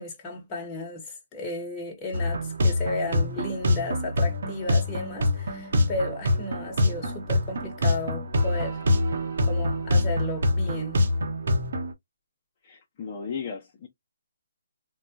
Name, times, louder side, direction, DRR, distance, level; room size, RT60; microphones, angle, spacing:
voice 1, 0.0-8.8 9.4-11.0, left 2 dB, 20° left, 1.2 m, -34 dB
sound 1, 2.1-11.9, left 1 dB, 65° right, 1.1 m, -25 dB
voice 2, 12.6-13.9, left 6 dB, 35° left, 0.8 m, -35 dB
3.9 x 2.3 x 2.6 m
hypercardioid pair, 155°, 0 cm